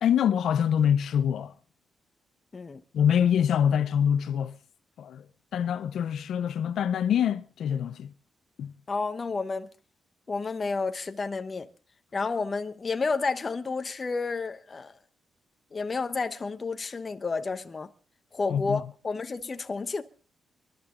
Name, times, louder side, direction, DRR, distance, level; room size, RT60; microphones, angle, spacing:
voice 1, 0.0-1.5 2.9-4.6 5.0-5.3 5.5-8.1 8.6-8.7 18.5-18.8, left 9 dB, 70° left, 0.7 m, -25 dB
voice 2, 8.9-9.7 10.3-11.7 12.1-14.9 15.7-17.9 18.3-20.0, left 4 dB, 25° left, 1.1 m, -31 dB
28.0 x 11.5 x 3.9 m
cardioid pair, 145°, 0 cm